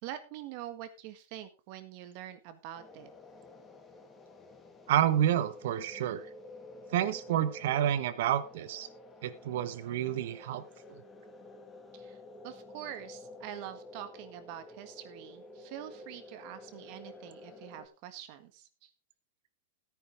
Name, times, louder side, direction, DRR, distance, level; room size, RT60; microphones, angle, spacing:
voice 1, 0.0-3.1 11.9-12.2 12.4-18.9, right 11 dB, 50° right, 10 dB, 1.6 m, -45 dB
sound 1, 2.8-17.9, left 2 dB, 15° left, 2.0 m, -51 dB
voice 2, 4.9-6.2 6.9-8.9 9.2-10.6, right 11 dB, 70° right, 14 dB, 1.2 m, -29 dB
14.0 x 9.7 x 3.6 m, 0.31 s
supercardioid pair, 145°, 0 cm